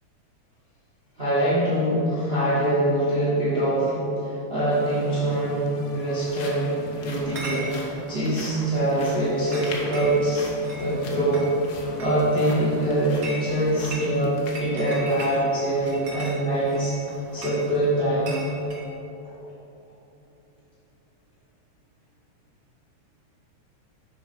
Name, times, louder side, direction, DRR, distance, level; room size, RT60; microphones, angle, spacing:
voice 1, 1.2-10.4 10.8-11.5 11.7-16.9 17.3-18.3, right 1 dB, 25° right, -10 dB, 1.7 m, -24 dB
sound 1, 4.7-14.1, left 5 dB, 75° left, 1.5 m, -42 dB
sound 2, 5.7-16.1 16.5-16.6 17.1-17.3, left 2 dB, 60° left, 1.2 m, -43 dB
Chatter / Chink clink, 7.2-18.9, right 2 dB, 60° right, 0.9 m, -40 dB
7.2 x 5.4 x 5.7 m, 3.0 s
omnidirectional pair, 3.3 m